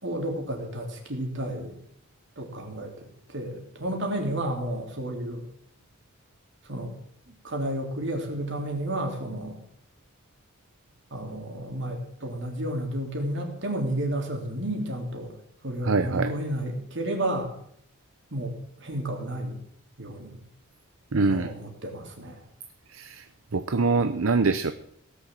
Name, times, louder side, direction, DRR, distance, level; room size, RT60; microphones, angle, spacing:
voice 1, 0.0-1.7 2.4-5.4 6.7-6.9 7.4-9.6 11.1-15.3 15.6-17.5 18.3-18.5 18.8-19.6 20.0-20.4 21.2-22.4, right 1 dB, 60° right, 2 dB, 3.2 m, -31 dB
voice 2, 15.8-16.4 21.1-21.5 22.9-23.2 23.5-24.7, right 4 dB, 80° right, 10 dB, 0.7 m, -24 dB
17.0 x 7.1 x 7.5 m, 0.69 s
head